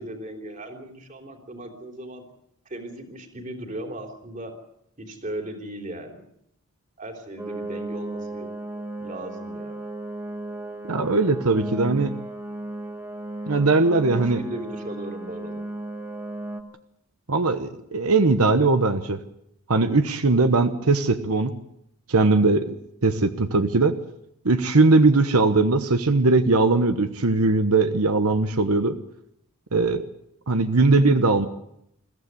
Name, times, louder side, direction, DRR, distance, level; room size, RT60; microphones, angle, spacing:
voice 1, 0.0-2.2 2.6-4.6 5.0-6.2 7.0-8.5 9.0-9.8 13.9-15.7, right 1 dB, 35° right, 4 dB, 3.3 m, -37 dB
sound 1, 7.4-16.6, right 2 dB, 10° right, 2.0 m, -34 dB
voice 2, 10.9-12.1 13.5-14.4 17.3-19.2 19.7-21.5 22.1-22.7 23.0-23.9 24.4-29.0 29.7-30.0 30.5-31.5, right 3 dB, 85° right, 9 dB, 1.1 m, -20 dB
22.0 x 15.0 x 9.5 m, 0.77 s
head